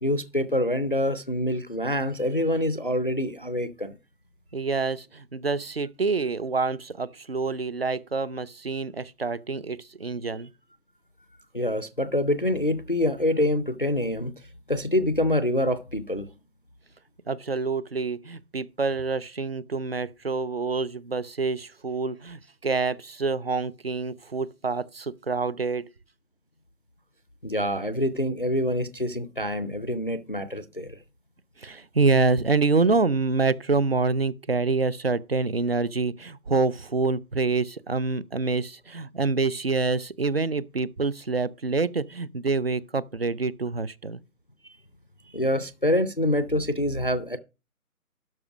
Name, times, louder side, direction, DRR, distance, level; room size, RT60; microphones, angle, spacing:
voice 1, 0.0-4.0 11.5-14.3 14.7-16.3 27.4-31.0 45.3-47.4, left 1 dB, 40° left, 0.4 m, -26 dB
voice 2, 4.5-10.5 17.3-25.9 31.6-44.2, right 4 dB, 45° right, 0.4 m, -26 dB
12.0 x 5.3 x 4.9 m
hypercardioid pair, 170°, 44 cm